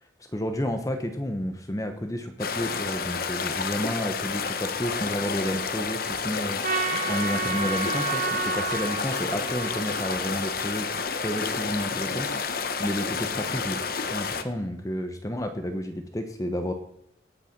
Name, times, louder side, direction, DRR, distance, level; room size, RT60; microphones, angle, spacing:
voice 1, 0.3-6.6 7.1-10.9 11.2-16.7, equal, 20° left, 6 dB, 1.0 m, -31 dB
sound 1, 2.4-14.4, left 5 dB, 50° left, 0.9 m, -30 dB
Trumpet, 6.6-11.0, right 5 dB, 45° right, 1.4 m, -31 dB
18.0 x 6.9 x 5.9 m, 0.76 s
head